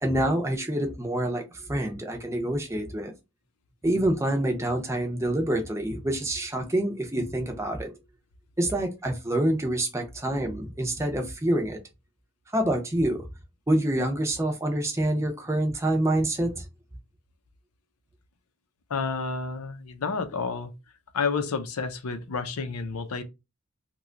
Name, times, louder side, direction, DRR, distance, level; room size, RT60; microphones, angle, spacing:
voice 1, 0.0-3.1 3.8-8.0 8.6-11.8 12.5-13.2 13.7-16.6, right 1 dB, 15° right, 0.5 m, -26 dB
voice 2, 18.9-20.7 21.1-23.2, left 4 dB, 90° left, 0.6 m, -30 dB
2.9 x 2.3 x 3.7 m
head